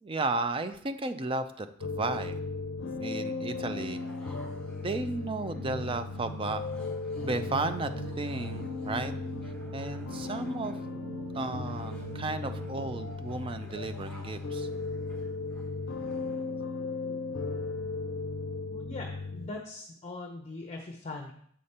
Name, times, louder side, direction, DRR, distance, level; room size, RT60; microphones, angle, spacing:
voice 1, 0.0-2.4 3.0-4.0 4.8-6.6 7.2-9.1 9.7-10.7 11.3-14.7, right 3 dB, 25° right, 9 dB, 0.5 m, -34 dB
sound 1, 1.8-19.5, left 3 dB, 70° left, 0.5 m, -36 dB
sound 2, 3.8-16.6, equal, 5° left, 1.1 m, -57 dB
sound 3, 5.6-13.2, right 4 dB, 85° right, 0.4 m, -46 dB
voice 2, 18.7-21.3, left 2 dB, 35° left, 2 dB, 0.7 m, -41 dB
7.7 x 5.1 x 4.2 m, 0.64 s
head